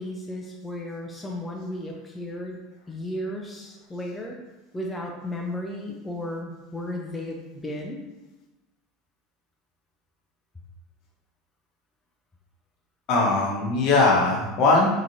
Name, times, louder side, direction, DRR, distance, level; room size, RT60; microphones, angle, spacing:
voice 1, 0.0-2.6 2.9-4.4 4.7-8.0, left 1 dB, 15° left, -1 dB, 0.5 m, -34 dB
voice 2, 13.1-14.9, left 3 dB, 55° left, -2 dB, 1.0 m, -20 dB
3.8 x 2.9 x 2.6 m, 1.0 s
supercardioid pair, 100°, 0 cm